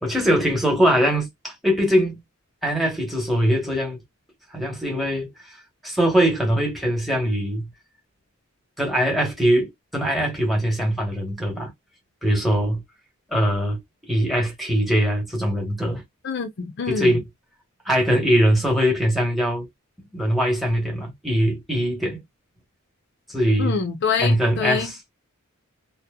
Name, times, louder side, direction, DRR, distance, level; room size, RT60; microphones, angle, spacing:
voice 1, 0.0-2.2 2.6-4.0 4.5-5.3 5.8-7.7 8.8-11.7 12.2-12.8 13.3-16.0 16.9-17.2 17.8-19.7 20.1-22.2 23.3-23.8 24.2-25.0, equal, ahead, 1.0 m, -22 dB
voice 2, 16.2-17.2 23.6-24.9, left 5 dB, 55° left, 0.6 m, -26 dB
2.7 x 2.2 x 2.2 m
head